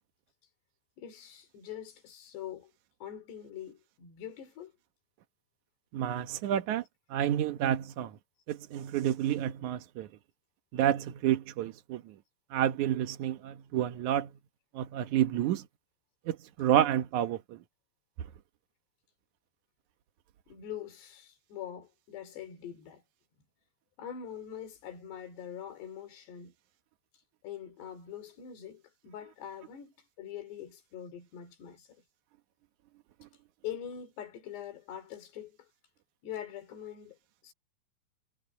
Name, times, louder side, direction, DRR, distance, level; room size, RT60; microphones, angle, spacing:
voice 1, 1.0-2.7 3.0-4.7 20.5-23.0 24.0-26.5 27.4-32.0 33.6-35.7 36.2-37.2 37.4-37.5, left 9 dB, 90° left, 5.3 m, -43 dB
voice 2, 5.9-6.8 7.1-8.2 8.5-10.1 10.7-12.2 12.5-14.3 14.7-15.6 16.3-17.6, right 11 dB, 65° right, 1.9 m, -29 dB
omnidirectional pair, 4.7 m